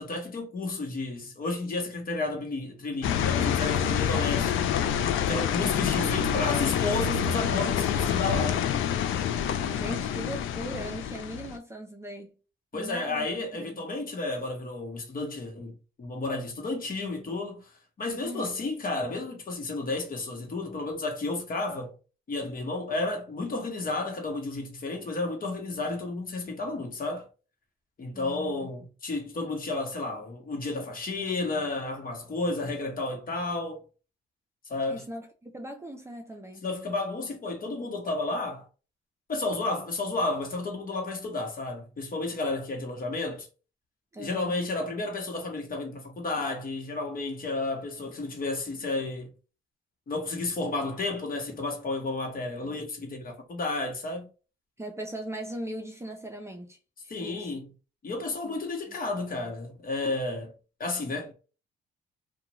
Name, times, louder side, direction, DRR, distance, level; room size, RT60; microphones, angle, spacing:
voice 1, 0.0-4.8 5.3-8.6 12.7-17.7 18.0-21.9 22.3-27.3 28.0-33.8 34.7-35.0 36.6-38.7 39.3-43.5 44.2-49.3 50.1-54.3 57.1-57.7 58.0-60.5 60.8-61.3, left 2 dB, 45° left, 1.2 m, -32 dB
sound 1, 3.0-11.6, left 9 dB, 80° left, 0.4 m, -27 dB
voice 2, 5.9-6.8 7.7-7.8 9.7-12.3 12.7-13.3 13.6-13.8 18.2-18.5 28.1-28.7 34.9-36.6 44.1-44.6 54.8-56.8 57.2-57.5 58.4-58.6 58.9-59.0, right 1 dB, 15° right, 0.7 m, -39 dB
2.4 x 2.4 x 3.0 m
cardioid pair, 90°, 20 cm